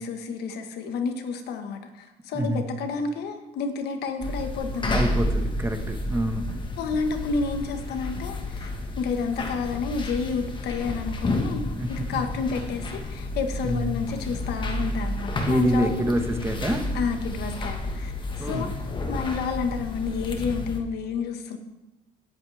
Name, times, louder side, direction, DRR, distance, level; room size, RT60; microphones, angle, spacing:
voice 1, 0.0-5.0 6.8-8.7 9.0-16.0 16.9-18.7 19.1-21.6, left 5 dB, 75° left, 6 dB, 1.6 m, -30 dB
voice 2, 2.3-2.6 4.9-6.4 11.7-12.4 13.6-14.0 15.5-16.9 18.4-18.7, right 1 dB, 15° right, 5 dB, 1.4 m, -27 dB
sound 1, 4.2-20.8, left 2 dB, 30° left, 1.5 m, -31 dB
17.0 x 8.1 x 3.5 m, 0.96 s
cardioid pair, 110°, 17 cm